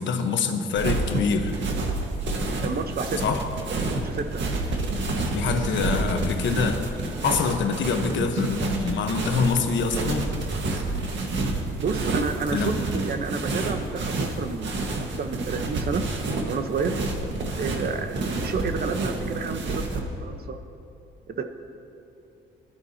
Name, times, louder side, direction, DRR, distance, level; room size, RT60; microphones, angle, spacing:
voice 1, 0.0-1.6 3.2-3.4 5.3-6.9 7.2-10.3 12.5-12.7, left 5 dB, 70° left, 5 dB, 1.2 m, -25 dB
sound 1, 0.7-20.0, right 2 dB, 65° right, 1.7 m, -29 dB
voice 2, 2.6-3.2 3.9-4.4 11.8-14.9 15.2-16.0 16.4-16.9 17.6-20.6 21.3-21.4, right 5 dB, 50° right, 7 dB, 1.0 m, -30 dB
19.5 x 12.0 x 2.9 m, 2.7 s
cardioid pair, 90°, 20 cm